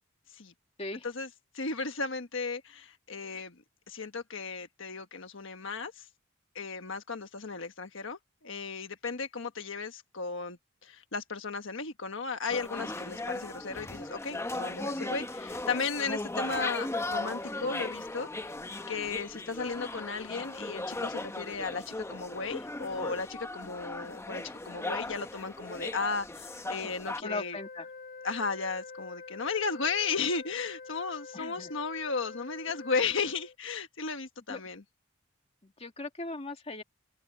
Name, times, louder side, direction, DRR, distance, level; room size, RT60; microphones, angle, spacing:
voice 1, 1.5-3.5 3.9-6.1 6.5-18.4 18.9-27.6 28.2-34.8, left 4 dB, 70° left, 1.4 m, -35 dB
sound 1, 12.5-27.2, left 2 dB, 15° left, 0.9 m, -37 dB
Wind instrument woodwind instrument, 27.2-33.6, left 4 dB, 45° left, 3.4 m, -46 dB
voice 2, 27.2-27.9 31.3-31.7 34.5-34.6 35.6-36.8, left 2 dB, 30° left, 2.2 m, -38 dB
open air
head